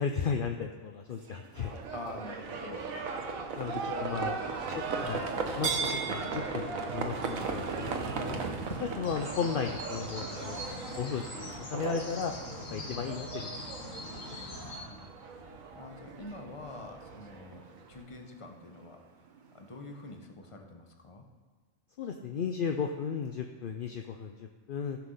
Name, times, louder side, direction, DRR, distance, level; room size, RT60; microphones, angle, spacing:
voice 1, 0.0-1.7 3.6-4.4 4.7-5.3 5.6-8.4 8.8-12.3 12.7-13.7 22.0-25.0, left 6 dB, 55° left, 5 dB, 0.6 m, -35 dB
sound 1, 1.1-20.2, right 5 dB, 45° right, 0.7 m, -54 dB
Livestock farm animals working animals, 1.6-18.0, right 4 dB, 85° right, 1.4 m, -37 dB
voice 2, 1.9-3.0 3.8-4.6 8.7-8.9 12.7-13.1 14.8-15.1 15.7-19.0 19.5-21.2, left 2 dB, 25° left, 4 dB, 1.0 m, -46 dB
sound 2, 9.0-14.8, left 1 dB, 70° left, 2.0 m, -42 dB
14.5 x 6.0 x 5.5 m, 1.4 s
omnidirectional pair, 1.4 m